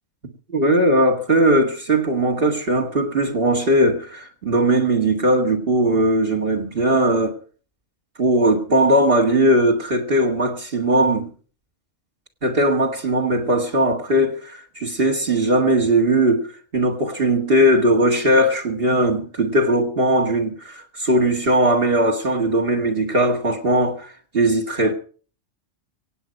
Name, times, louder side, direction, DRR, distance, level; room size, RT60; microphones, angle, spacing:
voice 1, 0.5-7.4 8.2-11.3 12.4-16.5 16.7-24.9, right 1 dB, 50° right, 2.2 m, -19 dB
25.0 x 9.0 x 5.3 m
omnidirectional pair, 1.3 m